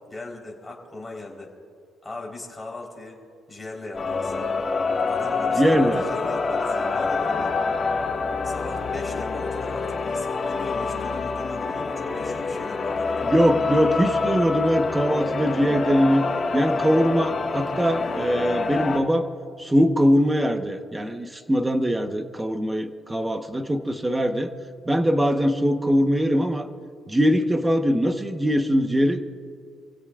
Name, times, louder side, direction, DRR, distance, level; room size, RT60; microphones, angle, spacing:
voice 1, 0.1-1.5 2.0-3.2 3.5-4.3 5.1-7.5 8.4-13.3, left 2 dB, 10° left, -2 dB, 4.0 m, -38 dB
sound 1, 3.9-19.0, left 4 dB, 35° left, 1.7 m, -26 dB
voice 2, 5.6-6.0 13.2-16.2 16.5-19.3 19.6-24.5 24.8-26.7 27.1-29.2, equal, 10° right, 7 dB, 1.1 m, -22 dB
28.5 x 16.5 x 2.5 m, 2.3 s
cardioid pair, 120°, 0 cm